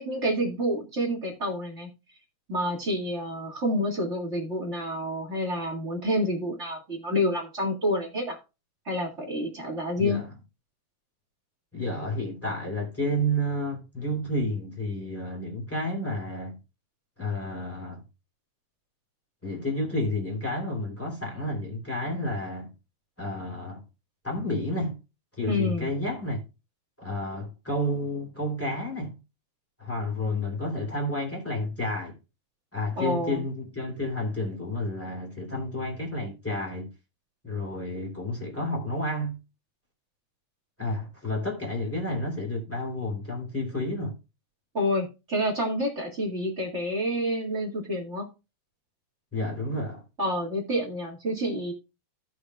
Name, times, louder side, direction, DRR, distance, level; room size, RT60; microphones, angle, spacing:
voice 1, 0.0-1.9 2.5-8.4 8.9-10.2 25.5-25.9 33.0-33.5 44.7-48.3 50.2-51.7, equal, 25° right, 1.9 m, -28 dB
voice 2, 10.0-10.3 11.7-16.6 17.2-18.0 19.4-22.7 23.2-23.8 24.2-25.0 25.4-26.4 27.0-29.1 29.8-32.1 32.7-36.9 37.4-39.4 40.8-44.1 49.3-50.0, left 1 dB, 5° left, 2.7 m, -30 dB
16.0 x 6.4 x 2.3 m
omnidirectional pair, 3.3 m